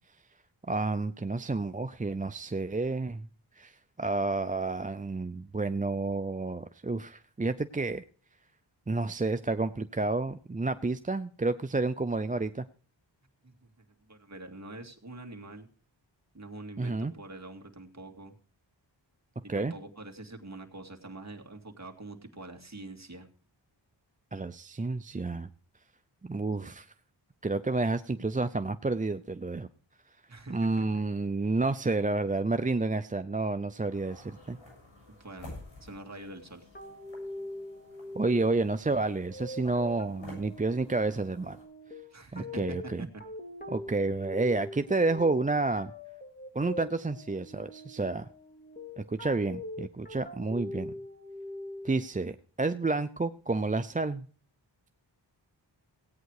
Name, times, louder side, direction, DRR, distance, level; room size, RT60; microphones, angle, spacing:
voice 1, 0.7-3.3 3.6-8.0 8.9-12.6 16.8-17.1 19.5-19.7 24.3-25.5 26.2-26.9 27.4-29.7 30.5-34.6 38.1-41.6 42.3-43.1 43.7-45.9 46.5-48.3 49.0-50.9 51.8-54.3, right 3 dB, 20° right, 10 dB, 0.5 m, -30 dB
voice 2, 13.4-15.7 16.3-18.4 19.4-23.3 30.3-30.9 35.2-36.7 42.1-43.1, right 2 dB, 35° right, 3 dB, 2.4 m, -45 dB
sound 1, 33.9-41.6, left 2 dB, 90° left, 7.6 m, -52 dB
sound 2, 36.7-52.1, left 1 dB, 20° left, 2.6 m, -43 dB
17.0 x 9.1 x 4.8 m, 0.43 s
wide cardioid pair, 60°, 45 cm